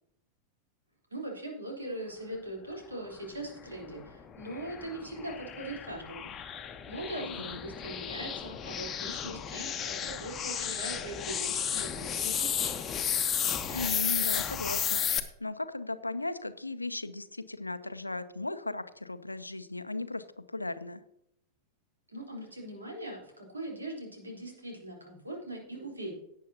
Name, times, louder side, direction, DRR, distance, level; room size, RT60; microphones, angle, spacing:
voice 1, 1.1-6.3 6.9-12.7 22.1-26.1, right 1 dB, 80° right, -1 dB, 3.8 m, -41 dB
sound 1, 3.6-15.2, left 8 dB, 25° left, 1.1 m, -33 dB
voice 2, 7.2-7.6 13.7-21.0, left 2 dB, 85° left, 12 dB, 0.7 m, -37 dB
17.5 x 8.4 x 2.9 m, 0.74 s
figure-of-eight pair, 90°, 0 cm